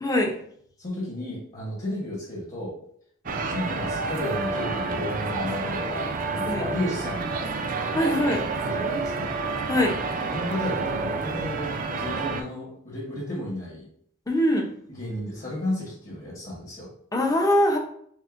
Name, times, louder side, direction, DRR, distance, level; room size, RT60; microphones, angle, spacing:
voice 1, 0.0-0.3 6.5-6.6 7.9-8.4 9.7-10.0 14.3-14.7 17.1-17.8, left 1 dB, 15° left, 2 dB, 0.6 m, -22 dB
voice 2, 0.8-2.7 3.2-7.3 8.6-9.3 10.2-13.8 14.9-16.9, left 1 dB, 40° left, -5 dB, 1.1 m, -33 dB
sound 1, 3.3-12.4, right 3 dB, 40° right, 0.4 m, -29 dB
6.2 x 2.1 x 2.5 m, 0.65 s
head